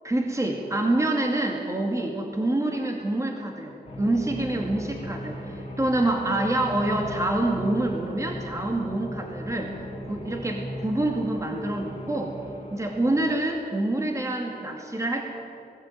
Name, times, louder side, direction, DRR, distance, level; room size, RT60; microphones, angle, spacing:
voice 1, 0.0-9.8 10.1-12.4 12.7-15.3, right 1 dB, 20° right, 1 dB, 2.4 m, -26 dB
sound 1, 3.9-13.2, equal, 35° left, 4.0 m, -37 dB
20.5 x 17.0 x 9.3 m, 2.8 s
wide cardioid pair, 130°, 17 cm